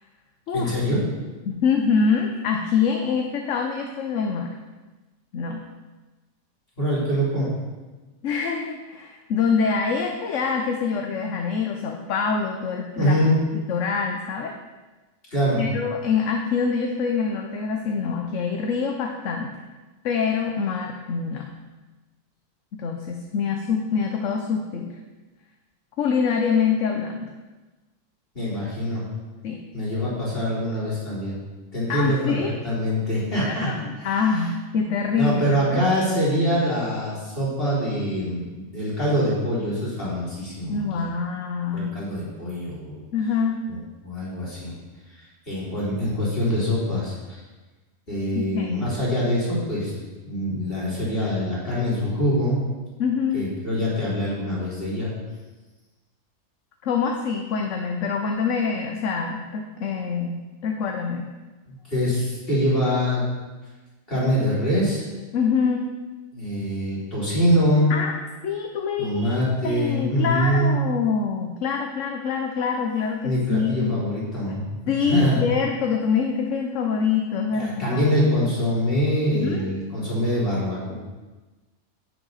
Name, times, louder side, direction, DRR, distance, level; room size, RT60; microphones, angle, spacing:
voice 1, 0.5-1.0 6.8-7.5 13.0-13.4 15.3-15.6 28.3-29.0 29.7-31.4 31.7-34.1 35.2-41.1 41.7-43.0 43.7-43.8 44.0-44.7 45.5-47.4 48.1-49.9 50.3-52.6 53.3-55.1 61.7-63.3 64.1-65.0 66.3-67.9 69.0-70.8 73.2-75.4 77.5-80.9, equal, 45° left, -8 dB, 4.1 m, -24 dB
voice 2, 1.4-4.5 5.3-5.6 8.2-13.2 13.7-14.5 15.5-19.5 20.0-21.5 22.7-25.0 26.0-27.3 29.4-29.6 31.9-32.5 33.4-35.8 40.7-42.0 43.1-43.6 48.3-48.8 53.0-53.4 56.8-61.3 65.3-65.9 67.9-68.1 68.4-69.4 69.6-74.1 74.9-78.1 79.4-79.8, left 5 dB, 75° left, 3 dB, 1.1 m, -25 dB
10.5 x 9.0 x 4.0 m, 1.2 s
omnidirectional pair, 1.3 m